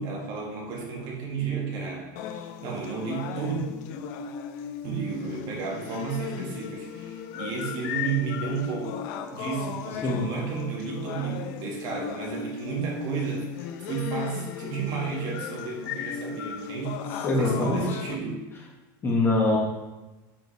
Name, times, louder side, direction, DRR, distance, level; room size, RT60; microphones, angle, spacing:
voice 1, 0.0-2.3 2.6-3.6 4.8-9.0 9.3-18.4, right 5 dB, 45° right, 0 dB, 2.0 m, -32 dB
sound 1, 2.2-18.1, left 8 dB, 60° left, 0.8 m, -36 dB
voice 2, 17.2-18.0 19.0-19.6, left 2 dB, 20° left, -2 dB, 1.7 m, -23 dB
9.5 x 7.8 x 3.4 m, 1.1 s
supercardioid pair, 160°, 11 cm